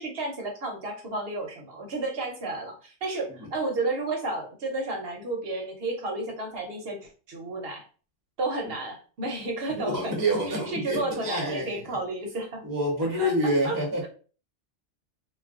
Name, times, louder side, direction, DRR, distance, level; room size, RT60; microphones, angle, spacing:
voice 1, 0.0-7.8 8.4-10.2 10.5-12.6 13.2-14.1, right 2 dB, 60° right, 0.8 m, -32 dB
voice 2, 9.8-11.8 12.6-14.0, right 1 dB, 20° right, 0.7 m, -27 dB
2.3 x 2.2 x 3.5 m
omnidirectional pair, 1.2 m